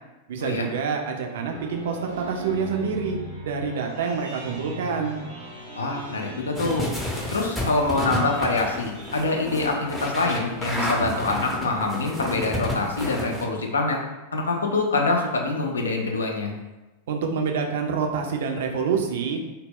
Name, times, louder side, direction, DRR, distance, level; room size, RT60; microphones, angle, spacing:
voice 1, 0.3-3.2 3.4-5.2 17.1-19.4, right 5 dB, 60° right, 2 dB, 0.3 m, -27 dB
sound 1, 1.1-11.8, equal, 90° left, 0.8 m, -40 dB
voice 2, 5.7-6.9 7.3-14.0 14.3-16.5, left 3 dB, 70° left, 1 dB, 0.4 m, -25 dB
sound 2, 6.6-13.4, left 1 dB, 5° left, 0.5 m, -30 dB
2.0 x 2.0 x 3.6 m, 1.1 s
figure-of-eight pair, 90°, 0 cm